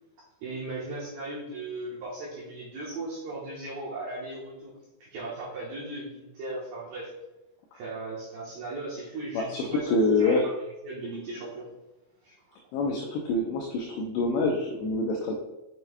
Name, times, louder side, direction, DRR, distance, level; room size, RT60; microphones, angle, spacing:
voice 1, 0.4-4.7 5.0-7.1 7.7-9.9 10.2-10.5 10.8-11.7 12.2-12.4, right 2 dB, 70° right, -7 dB, 2.3 m, -37 dB
voice 2, 9.3-10.5 12.7-15.4, left 2 dB, 90° left, 0 dB, 2.4 m, -26 dB
8.0 x 5.7 x 2.3 m, 1.0 s
omnidirectional pair, 5.7 m